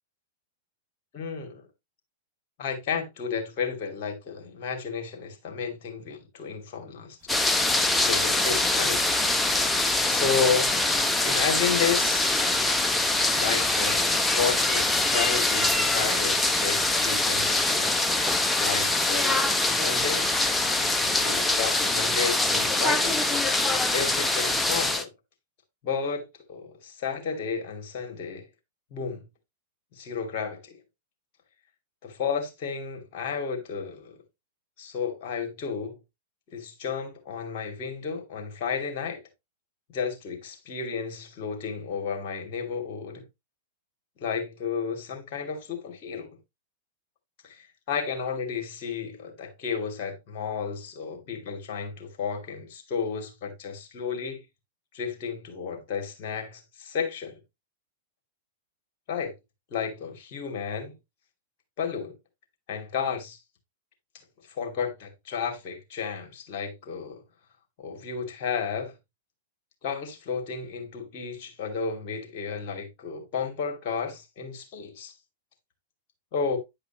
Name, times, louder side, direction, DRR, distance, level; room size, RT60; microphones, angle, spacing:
voice 1, 1.1-1.6 2.6-7.2 7.4-7.6 7.9-9.0 10.1-10.7 11.2-12.3 13.3-18.0 18.6-20.3 21.2-23.2 23.9-25.1 25.8-28.5 28.9-29.2 29.9-30.8 32.0-34.2 34.8-36.0 36.5-39.2 39.9-43.2 44.2-46.4 47.4-54.4 54.9-57.3 59.1-59.3 59.7-60.9 61.8-62.2 62.7-63.4 64.5-67.2 67.8-68.9 69.8-75.1 76.3-76.6, left 6 dB, 50° left, 2.7 m, -32 dB
sound 1, 7.2-24.5, right 1 dB, 10° right, 5.7 m, -48 dB
sound 2, 7.3-25.0, left 2 dB, 10° left, 0.8 m, -24 dB
9.9 x 4.9 x 2.9 m
hypercardioid pair, 110°, 0 cm